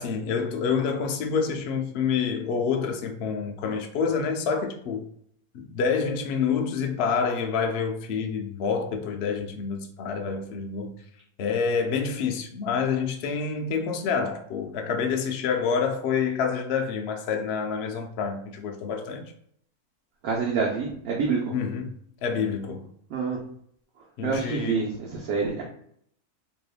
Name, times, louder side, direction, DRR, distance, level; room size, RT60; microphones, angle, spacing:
voice 1, 0.0-5.1 5.5-10.9 11.4-19.3 21.5-22.0 22.2-22.9 24.2-24.9, left 6 dB, 75° left, 0.5 m, -27 dB
voice 2, 20.2-21.4 23.1-23.4 24.2-25.6, right 5 dB, 70° right, 1.0 m, -27 dB
3.3 x 2.9 x 2.3 m
omnidirectional pair, 1.6 m